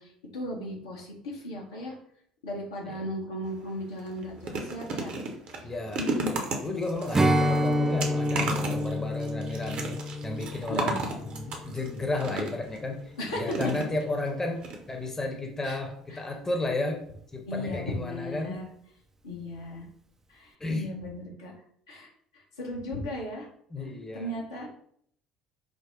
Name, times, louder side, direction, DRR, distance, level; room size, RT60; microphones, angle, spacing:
voice 1, 0.0-1.9 2.4-5.1 6.0-6.4 10.7-11.0 13.2-13.5 15.6-15.8 16.1-16.2 17.5-18.7 19.2-19.9 20.3-21.5 21.9-22.1 22.6-23.5 24.1-24.7, left 1 dB, 75° left, -2 dB, 0.9 m, -36 dB
sound 1, 3.4-3.6 4.0-12.8 13.5-14.3 14.6-14.8 15.0-15.1, right 3 dB, 50° right, 0.8 m, -34 dB
voice 2, 5.6-6.0 6.6-13.0 13.3-17.0 17.3-18.6 20.6-20.9 23.7-24.3, left 2 dB, 20° left, 3 dB, 0.8 m, -33 dB
Strum, 7.1-12.6, equal, 20° right, 0.4 m, -28 dB
5.0 x 2.1 x 3.7 m, 0.66 s
figure-of-eight pair, 55°, 2 cm